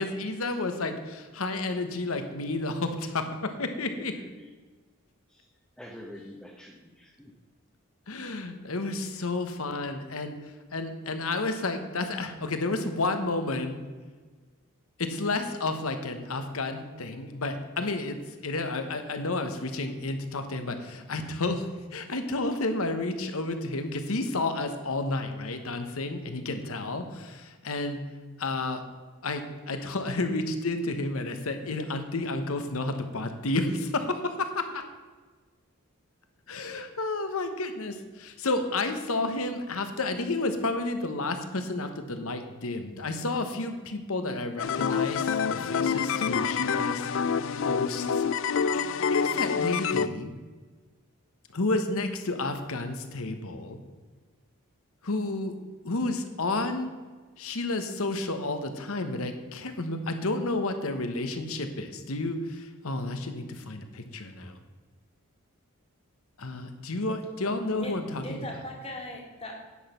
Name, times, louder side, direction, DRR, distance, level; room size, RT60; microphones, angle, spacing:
voice 1, 0.0-4.1 8.1-13.8 15.0-28.0 28.4-28.8 29.2-34.8 36.5-47.1 47.6-50.3 51.5-53.8 55.0-55.5 55.8-56.9 57.4-64.6 66.4-68.5, left 2 dB, 75° left, 7 dB, 1.1 m, -31 dB
voice 2, 4.1-4.5 5.3-5.5 5.8-7.3, left 1 dB, 5° left, -1 dB, 0.8 m, -47 dB
sound 1, 44.6-50.1, left 6 dB, 60° left, 0.4 m, -27 dB
voice 3, 67.7-69.6, left 1 dB, 30° left, 0 dB, 1.8 m, -39 dB
9.9 x 6.3 x 5.7 m, 1.4 s
head